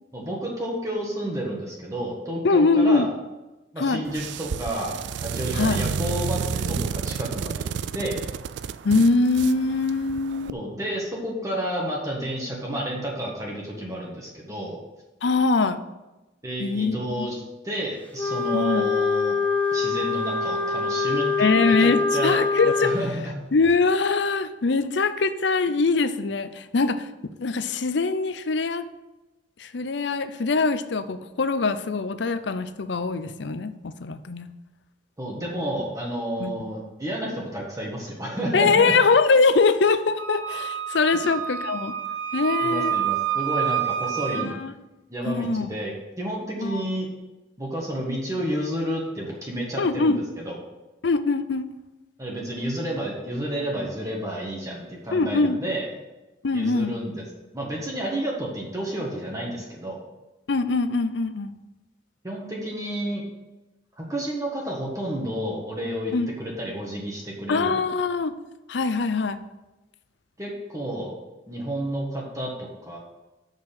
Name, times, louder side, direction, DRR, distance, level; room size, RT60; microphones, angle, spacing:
voice 1, 0.1-3.1 3.7-7.7 7.9-8.2 10.5-14.8 16.4-19.4 19.7-22.4 22.8-23.3 35.2-38.9 41.1-41.2 42.6-44.6 45.1-47.1 47.6-50.6 52.2-55.9 56.5-57.2 57.5-60.0 62.2-63.2 64.0-66.1 66.4-67.7 70.4-71.2 71.5-73.0, right 1 dB, 15° right, -2 dB, 1.5 m, -31 dB
voice 2, 2.4-3.1 3.8-4.0 5.5-5.8 8.8-10.5 15.2-15.8 16.6-17.3 18.5-18.9 21.4-22.9 23.5-27.1 27.4-28.9 29.6-34.5 36.4-36.5 38.5-41.9 42.3-43.0 44.3-44.7 45.3-45.7 46.6-46.8 49.8-50.2 51.0-51.7 55.1-55.6 56.4-56.9 60.5-61.5 66.1-66.3 67.5-68.3 68.7-69.4, left 4 dB, 65° left, 12 dB, 0.6 m, -22 dB
sound 1, 4.1-10.5, right 6 dB, 65° right, 0.3 m, -30 dB
Wind instrument woodwind instrument, 18.1-23.0, left 4 dB, 10° left, 0.8 m, -24 dB
Wind instrument woodwind instrument 2, 40.2-44.5, right 9 dB, 85° right, 0.9 m, -28 dB
6.7 x 6.1 x 7.4 m, 1.0 s
head